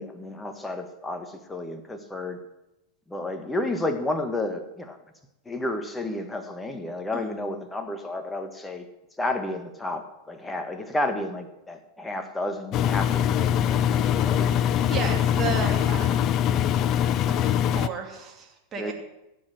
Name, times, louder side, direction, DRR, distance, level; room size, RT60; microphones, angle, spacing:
voice 1, 0.0-2.4 3.1-5.0 5.4-8.8 9.2-14.5 18.8-18.9, left 2 dB, 10° left, 7 dB, 1.5 m, -31 dB
Engine, 12.7-17.9, left 10 dB, 35° left, 0.5 m, -23 dB
voice 2, 14.8-16.3 17.3-18.9, right 5 dB, 25° right, 1 dB, 2.7 m, -33 dB
17.0 x 7.7 x 6.5 m, 0.93 s
figure-of-eight pair, 90°, 0 cm